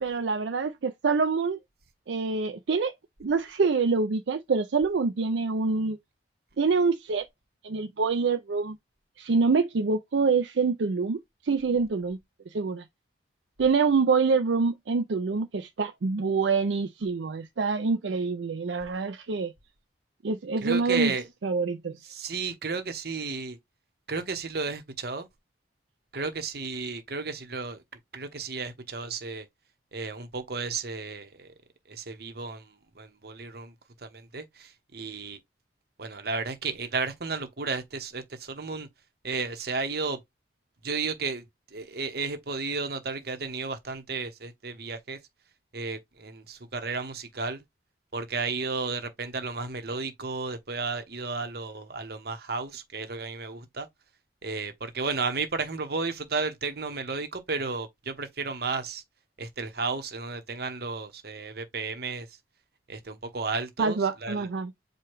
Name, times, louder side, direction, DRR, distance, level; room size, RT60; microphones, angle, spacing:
voice 1, 0.0-1.6 2.1-2.9 3.2-6.0 6.6-7.3 7.6-8.8 9.2-12.2 12.5-12.8 13.6-19.5 20.2-21.1 21.4-22.0 63.8-64.7, right 4 dB, 70° right, 0.5 m, -26 dB
voice 2, 20.6-21.2 22.1-23.6 24.1-25.3 26.1-27.8 28.1-29.5 29.9-31.5 31.9-33.7 34.0-35.4 36.0-38.9 39.2-40.2 40.8-41.4 41.7-45.2 45.7-47.6 48.1-53.9 54.4-59.0 59.4-62.3 62.9-64.5, right 4 dB, 55° right, 1.0 m, -33 dB
4.8 x 2.3 x 4.6 m
head